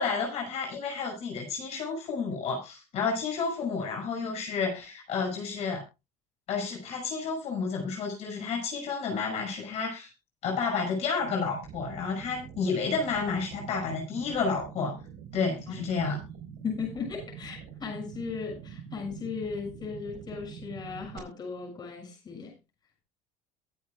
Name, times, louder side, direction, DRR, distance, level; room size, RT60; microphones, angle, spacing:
voice 1, 0.0-5.8 6.5-10.1 10.4-15.0 15.3-16.2, left 5 dB, 50° left, 6.1 m, -31 dB
sound 1, 11.2-21.2, right 8 dB, 80° right, 4.3 m, -45 dB
voice 2, 16.6-22.5, left 5 dB, 30° left, 6.6 m, -37 dB
22.0 x 8.4 x 2.3 m
cardioid pair, 130°, 14 cm